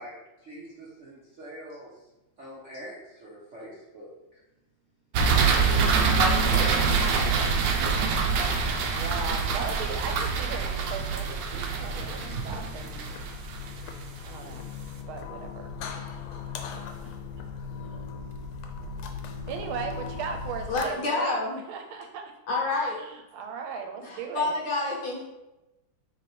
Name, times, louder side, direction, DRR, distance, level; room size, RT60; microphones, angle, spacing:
voice 1, 0.0-2.1 2.4-4.4 5.6-6.3, right 1 dB, 60° right, -7 dB, 0.8 m, -44 dB
sound 1, 5.1-14.3, right 5 dB, 75° right, 1.1 m, -25 dB
sound 2, 5.6-20.9, left 5 dB, 90° left, 1.4 m, -40 dB
voice 2, 6.1-6.9 20.7-21.6 22.5-23.0 24.0-25.2, left 2 dB, 60° left, -3 dB, 1.4 m, -29 dB
voice 3, 9.0-13.0 14.2-14.8 15.1-15.7 16.0-16.2 17.0-17.5 19.5-22.2 23.0-24.6, right 6 dB, 90° right, 4 dB, 1.5 m, -37 dB
3.4 x 3.2 x 4.2 m, 0.98 s
omnidirectional pair, 2.3 m